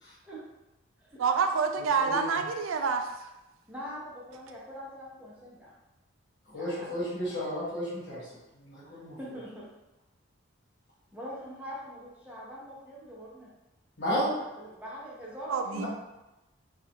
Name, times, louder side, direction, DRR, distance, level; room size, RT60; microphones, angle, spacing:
voice 1, 1.2-3.1 15.5-15.9, right 5 dB, 90° right, 6 dB, 0.4 m, -27 dB
voice 2, 2.0-2.4 6.5-9.2 14.0-14.3 15.6-15.9, equal, 55° left, -9 dB, 1.4 m, -33 dB
voice 3, 3.7-5.7 6.6-7.3 8.9-9.7 11.1-13.5 14.4-15.9, equal, 5° right, -6 dB, 0.7 m, -43 dB
3.8 x 2.3 x 2.9 m, 0.99 s
head